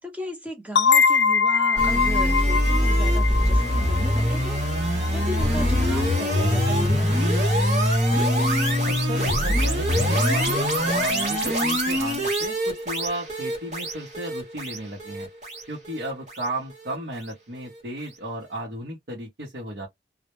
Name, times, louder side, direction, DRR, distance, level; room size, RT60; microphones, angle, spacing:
voice 1, 0.0-7.2, right 1 dB, 10° right, 0.6 m, -35 dB
sound 1, 0.8-6.2, left 5 dB, 70° left, 0.3 m, -23 dB
sound 2, 1.8-16.9, equal, 40° right, 0.9 m, -23 dB
voice 2, 8.8-15.3 15.7-19.9, right 1 dB, 70° right, 0.7 m, -34 dB
2.1 x 2.0 x 2.9 m
head